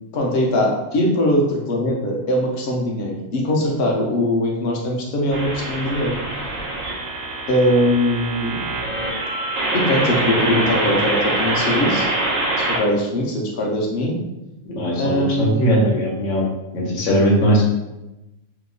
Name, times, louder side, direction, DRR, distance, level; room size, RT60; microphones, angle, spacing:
voice 1, 0.1-6.1 7.5-8.6 9.7-12.1 12.6-14.1 15.0-15.5, left 1 dB, 60° left, -1 dB, 0.8 m, -21 dB
sound 1, 5.3-12.8, right 2 dB, 85° right, 1.1 m, -24 dB
voice 2, 14.6-16.4 16.7-17.6, equal, 75° left, -2 dB, 1.1 m, -19 dB
2.8 x 2.0 x 3.7 m, 0.96 s
omnidirectional pair, 1.3 m